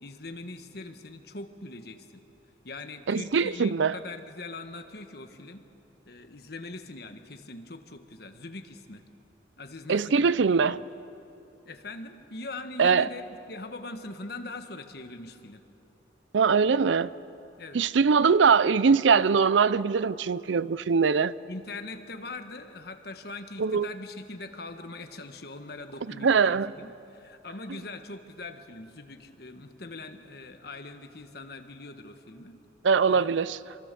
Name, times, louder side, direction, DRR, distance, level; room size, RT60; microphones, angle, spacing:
voice 1, 0.0-2.2 2.6-5.6 6.0-9.0 9.6-10.4 10.7-10.8 11.6-15.6 17.6-17.8 21.5-32.6 33.1-33.3, left 2 dB, 55° left, 1.4 m, -42 dB
voice 2, 3.1-3.9 9.9-10.8 12.8-13.1 16.3-17.1 17.7-21.3 23.6-23.9 26.2-26.7 32.8-33.6, right 5 dB, 85° right, 0.5 m, -22 dB
27.0 x 23.0 x 6.9 m
head